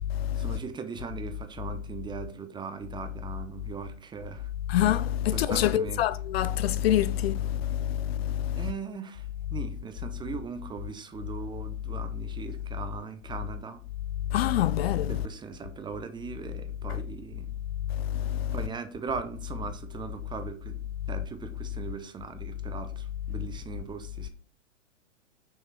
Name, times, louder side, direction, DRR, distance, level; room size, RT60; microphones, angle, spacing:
voice 1, 0.4-4.5 5.3-6.0 8.6-13.8 15.1-17.5 18.5-24.3, right 6 dB, 10° right, 0.7 m, -39 dB
voice 2, 4.7-8.6 14.3-15.2 18.1-18.5, left 12 dB, 55° left, 0.5 m, -26 dB
6.3 x 4.5 x 4.6 m
hypercardioid pair, 115°, 38 cm